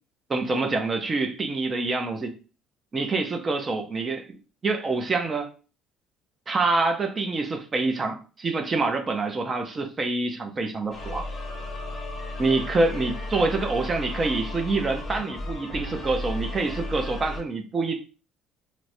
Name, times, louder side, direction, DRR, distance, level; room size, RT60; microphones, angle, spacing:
voice 1, 0.3-2.3 2.9-4.4 4.6-5.5 6.5-11.3 12.4-18.0, right 3 dB, 20° right, 0.4 m, -26 dB
sound 1, 10.9-17.4, left 2 dB, 15° left, 0.8 m, -34 dB
4.5 x 2.0 x 2.6 m
cardioid pair, 175°, 0 cm